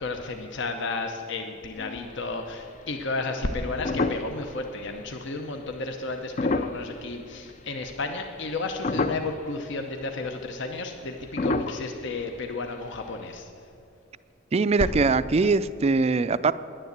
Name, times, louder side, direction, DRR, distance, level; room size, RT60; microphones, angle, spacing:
voice 1, 0.0-13.5, left 3 dB, 65° left, 5 dB, 0.8 m, -32 dB
sound 1, 1.8-2.5 2.9-3.0 3.5-4.6 5.0-5.1 6.1-7.6 8.0-8.5 8.8-9.5 9.9-10.0 10.2-10.4 11.3-12.9 13.1-13.2, left 3 dB, 40° left, 0.5 m, -29 dB
voice 2, 14.5-16.5, right 4 dB, 30° right, 15 dB, 0.3 m, -22 dB
10.0 x 9.9 x 8.0 m, 2.6 s
head